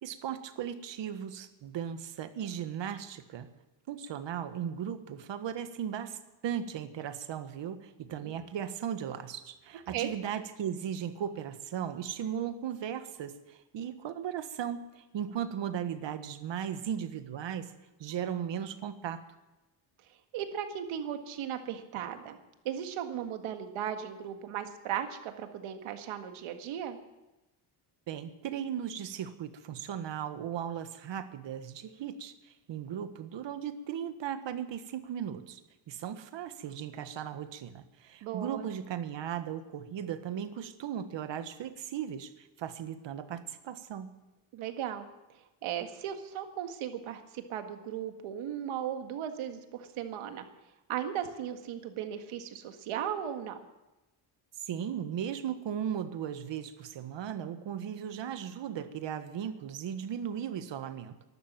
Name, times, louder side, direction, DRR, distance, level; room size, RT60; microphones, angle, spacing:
voice 1, 0.0-3.5 3.9-17.7 18.0-19.2 28.1-35.6 35.9-44.2 54.7-61.1, right 9 dB, 60° right, 10 dB, 1.5 m, -37 dB
voice 2, 20.1-22.4 22.7-27.0 38.2-38.7 44.5-45.1 45.6-50.5 50.9-53.6, right 9 dB, 85° right, 7 dB, 1.8 m, -36 dB
13.5 x 11.5 x 7.5 m, 1.0 s
cardioid pair, 115°, 49 cm